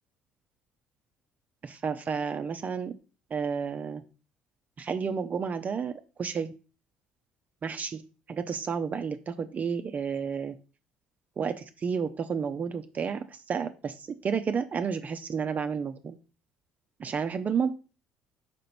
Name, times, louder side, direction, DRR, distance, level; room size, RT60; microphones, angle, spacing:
voice 1, 1.6-2.9 3.3-4.0 4.8-5.9 6.2-6.5 7.6-8.0 8.3-10.5 11.4-14.0 14.2-16.2 17.0-17.7, right 6 dB, 40° right, 8 dB, 0.6 m, -31 dB
5.2 x 5.1 x 4.3 m, 0.34 s
hypercardioid pair, 60°, 4 cm